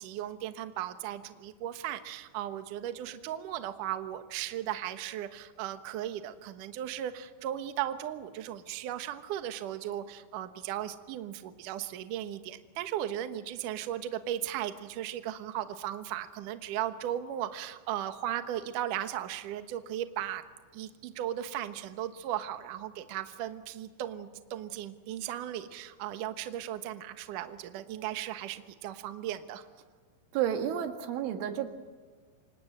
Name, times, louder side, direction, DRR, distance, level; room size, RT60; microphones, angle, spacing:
voice 1, 0.0-20.4 20.7-29.7, right 11 dB, 65° right, 9 dB, 2.2 m, -36 dB
voice 2, 30.3-31.7, right 10 dB, 90° right, 6 dB, 4.3 m, -31 dB
28.5 x 26.0 x 7.9 m, 1.5 s
omnidirectional pair, 5.3 m